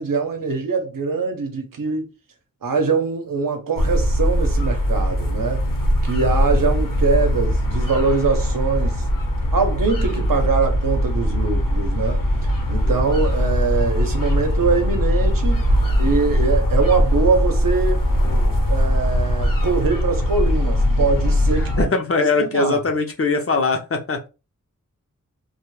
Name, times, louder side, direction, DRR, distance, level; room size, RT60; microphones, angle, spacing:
voice 1, 0.0-2.1 2.6-5.6 6.0-9.0 9.5-12.2 12.7-15.6 16.0-18.1 18.7-21.9 22.1-22.8, right 4 dB, 80° right, 0.7 m, -23 dB
sound 1, 3.8-21.8, equal, 75° left, 0.8 m, -20 dB
voice 2, 21.6-24.3, left 3 dB, 45° left, 0.6 m, -21 dB
2.2 x 2.2 x 3.1 m
wide cardioid pair, 75°, 33 cm